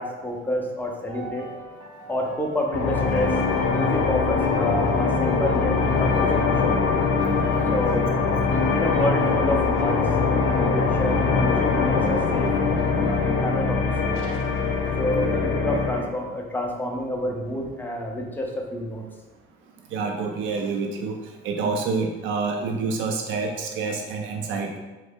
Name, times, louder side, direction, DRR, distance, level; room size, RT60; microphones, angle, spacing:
voice 1, 0.0-1.5 2.1-3.4 3.7-6.8 7.7-8.1 8.7-10.1 10.5-12.5 12.9-14.2 15.0-19.0, left 1 dB, 10° left, 0 dB, 0.5 m, -29 dB
sound 1, 1.1-14.4, right 3 dB, 50° right, 1.1 m, -40 dB
sound 2, 2.7-16.1, left 4 dB, 85° left, 0.7 m, -22 dB
voice 2, 19.9-21.2 21.4-24.8, right 4 dB, 70° right, 3 dB, 0.5 m, -27 dB
3.8 x 3.1 x 3.6 m, 1.2 s
cardioid pair, 160°, 20 cm